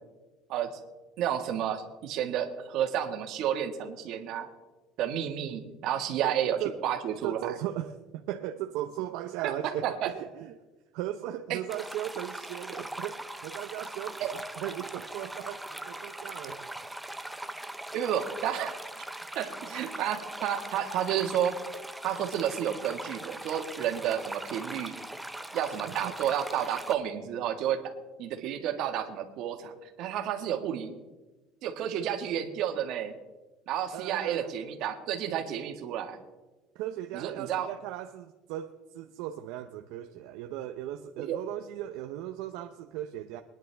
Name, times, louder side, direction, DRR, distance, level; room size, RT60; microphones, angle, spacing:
voice 1, 1.2-4.5 5.0-7.4 9.4-10.1 11.5-11.6 14.2-14.3 17.9-18.7 19.3-21.6 22.0-24.9 25.5-27.8 28.2-30.9 31.6-33.1 33.7-36.2 37.1-37.7 41.2-41.4, right 10 dB, 55° right, 5 dB, 1.6 m, -31 dB
voice 2, 7.2-10.5 10.9-16.7 25.9-26.1 33.9-34.5 36.7-43.4, right 12 dB, 70° right, 6 dB, 0.7 m, -37 dB
sound 1, 11.7-26.9, right 1 dB, 5° right, 0.6 m, -41 dB
23.0 x 10.5 x 3.4 m, 1.2 s
cardioid pair, 155°, 0 cm